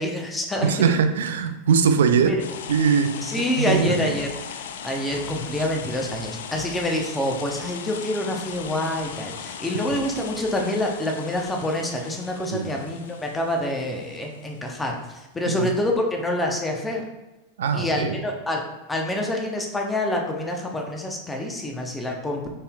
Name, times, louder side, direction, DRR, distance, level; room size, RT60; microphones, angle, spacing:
voice 1, 0.0-0.7 2.3-2.4 3.2-17.0 17.7-18.6 18.9-22.5, left 1 dB, 10° left, 1 dB, 0.8 m, -27 dB
voice 2, 0.6-2.3 2.7-3.1 3.6-4.1 12.5-12.7 15.5-15.7 17.6-18.2, right 6 dB, 60° right, 8 dB, 0.4 m, -21 dB
sound 1, 2.4-14.9, left 7 dB, 60° left, 0.4 m, -38 dB
5.3 x 4.1 x 2.4 m, 1.1 s
figure-of-eight pair, 90°, 0 cm